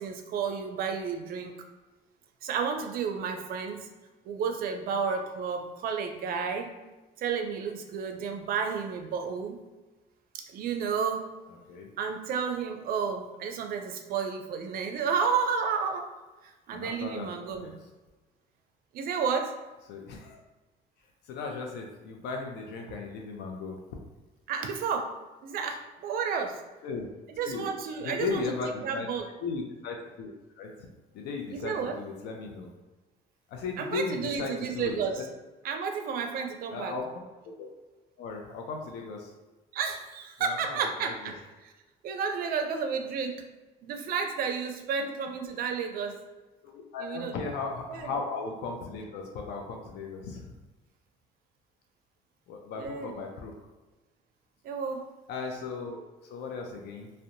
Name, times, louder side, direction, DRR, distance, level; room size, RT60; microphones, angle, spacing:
voice 1, 0.0-1.5 2.4-3.9 4.2-6.7 7.2-9.6 10.3-11.3 12.0-16.1 16.4-17.8 18.9-19.5 24.5-25.1 25.4-26.6 27.4-28.5 28.8-29.3 31.5-32.0 33.8-35.3 35.6-37.0 39.7-41.7 42.0-43.4 43.8-46.2 47.0-47.4 47.9-48.1 52.8-53.1 54.6-55.1, right 6 dB, 60° right, 5 dB, 0.4 m, -31 dB
voice 2, 16.7-17.7 19.9-20.4 21.3-23.8 26.8-27.1 27.5-27.7 28.0-29.1 29.4-30.9 31.1-32.7 33.5-35.2 36.7-37.7 38.2-39.3 40.5-41.1 46.6-50.5 52.5-53.5 55.3-57.1, left 4 dB, 80° left, 1 dB, 0.4 m, -36 dB
2.7 x 2.1 x 2.5 m, 1.2 s
cardioid pair, 110°, 17 cm